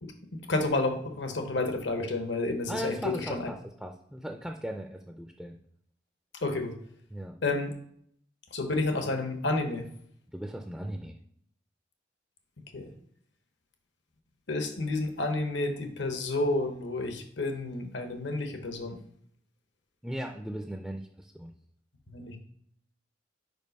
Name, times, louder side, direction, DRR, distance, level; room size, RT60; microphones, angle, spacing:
voice 1, 0.0-2.9 3.3-3.5 6.4-6.7 7.4-7.7 8.5-9.8 12.7-12.9 14.5-19.0 22.1-22.4, left 2 dB, 75° left, 6 dB, 1.0 m, -30 dB
voice 2, 2.7-5.6 7.1-7.4 10.3-11.2 20.0-21.5, equal, ahead, 2 dB, 0.4 m, -37 dB
5.3 x 4.9 x 5.2 m, 0.68 s
head